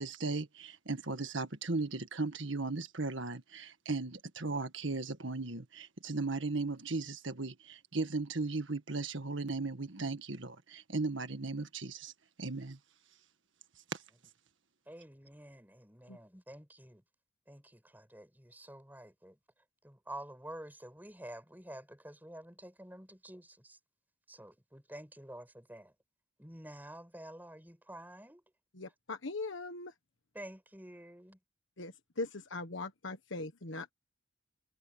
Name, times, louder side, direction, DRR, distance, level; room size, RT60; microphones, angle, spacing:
voice 1, 0.0-12.1 12.4-12.8 13.9-14.0, right 3 dB, 70° right, 1.7 m, -36 dB
voice 2, 14.9-17.0 17.5-19.4 19.8-23.8 24.3-25.9 26.4-28.4 30.3-31.4, right 1 dB, 10° right, 5.9 m, -49 dB
voice 3, 28.7-29.9 31.8-33.9, left 3 dB, 70° left, 1.4 m, -40 dB
head